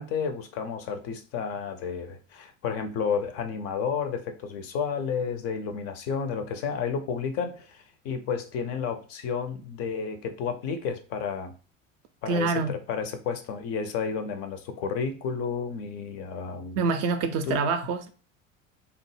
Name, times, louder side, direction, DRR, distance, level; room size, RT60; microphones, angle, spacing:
voice 1, 0.0-11.5 12.2-16.8 17.5-17.6, left 6 dB, 40° left, 0.5 m, -31 dB
voice 2, 12.3-12.8 16.8-18.1, right 4 dB, 40° right, 0.4 m, -26 dB
2.8 x 2.0 x 3.2 m
figure-of-eight pair, 70°, 39 cm